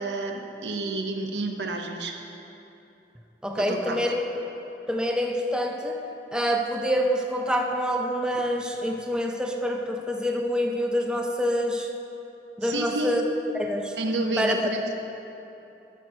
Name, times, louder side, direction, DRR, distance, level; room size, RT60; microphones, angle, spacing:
voice 1, 0.0-2.1 3.6-4.1 12.6-13.2 14.0-14.8, right 2 dB, 85° right, 3 dB, 0.9 m, -30 dB
voice 2, 3.4-4.3 4.9-6.0 6.3-11.9 12.6-13.2 13.6-14.0 14.4-14.7, equal, 5° right, 2 dB, 0.5 m, -26 dB
13.5 x 4.6 x 6.4 m, 2.9 s
head